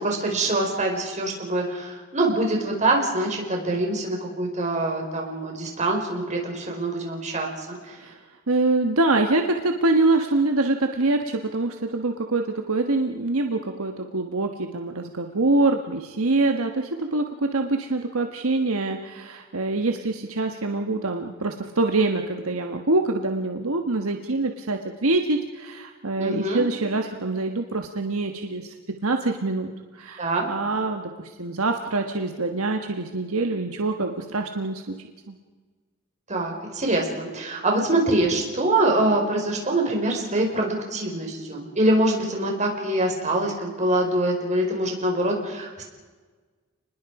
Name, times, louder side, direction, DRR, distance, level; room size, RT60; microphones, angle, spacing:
voice 1, 0.0-7.5 7.9-8.0 26.2-26.6 30.2-30.5 36.3-45.9, right 1 dB, 35° right, 1 dB, 4.9 m, -24 dB
voice 2, 8.5-28.7 29.0-29.7 30.0-34.9 35.3-35.4, right 2 dB, 70° right, 4 dB, 1.5 m, -25 dB
30.0 x 20.5 x 4.9 m, 1.4 s
head